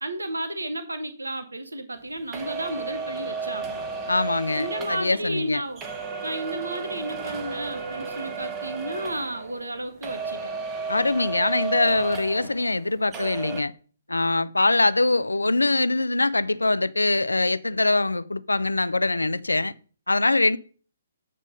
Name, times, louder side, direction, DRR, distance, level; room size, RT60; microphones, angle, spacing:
voice 1, 0.0-3.8 4.6-5.8 6.2-10.5, right 1 dB, 80° right, 1.0 m, -32 dB
sound 1, 2.3-9.8 10.0-12.9 13.1-13.6, right 4 dB, 20° right, 1.3 m, -33 dB
voice 2, 4.1-5.6 10.9-13.7 14.1-19.7 20.1-20.6, left 2 dB, 85° left, 0.4 m, -23 dB
8.3 x 3.6 x 5.3 m
figure-of-eight pair, 130°, 0 cm